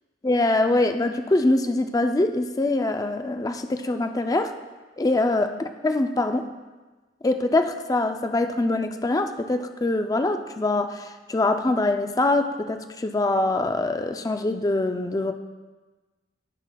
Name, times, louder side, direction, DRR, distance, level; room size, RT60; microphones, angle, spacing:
voice 1, 0.2-4.5 5.0-6.5 7.2-15.3, left 2 dB, 20° left, 7 dB, 0.4 m, -24 dB
16.0 x 5.7 x 2.3 m, 1.2 s
head